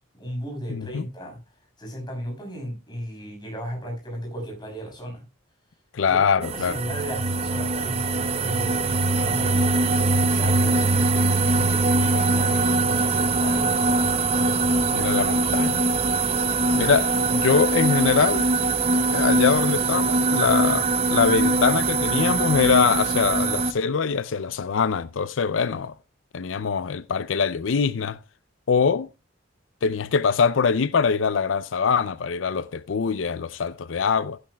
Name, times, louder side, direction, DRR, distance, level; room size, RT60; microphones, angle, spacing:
voice 1, 0.2-1.4 1.8-5.2 6.1-9.7 10.3-14.0, equal, 25° left, 6.2 m, -35 dB
voice 2, 0.7-1.0 5.9-6.8 14.9-15.9 16.7-18.4 19.1-25.9 26.3-28.2 28.7-29.1 29.8-34.4, left 6 dB, 85° left, 0.5 m, -23 dB
sound 1, 6.4-23.7, right 3 dB, 35° right, 0.8 m, -22 dB
15.5 x 10.5 x 2.3 m
head